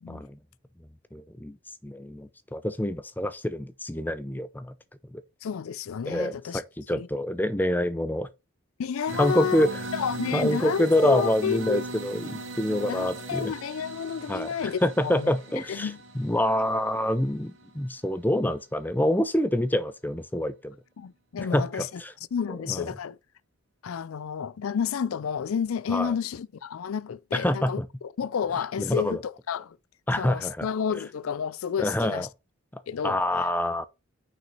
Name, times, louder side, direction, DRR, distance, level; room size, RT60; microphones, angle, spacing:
voice 1, 0.1-0.4 1.1-1.6 1.8-4.7 5.1-5.2 6.1-8.3 9.2-9.7 10.3-13.5 14.3-20.8 21.5-22.1 22.7-22.9 25.9-26.1 27.3-27.9 28.8-29.2 30.1-30.7 31.8-32.3 32.7-33.9, left 1 dB, 10° left, 0.6 m, -26 dB
voice 2, 5.4-6.6 6.9-7.1 8.8-11.8 12.9-15.3 15.7-16.0 21.0-22.0 22.3-23.2 23.8-29.8 30.2-32.3 32.9-33.2, left 7 dB, 90° left, 0.4 m, -31 dB
sound 1, 9.1-17.9, right 2 dB, 65° right, 2.2 m, -39 dB
6.0 x 6.0 x 4.0 m
head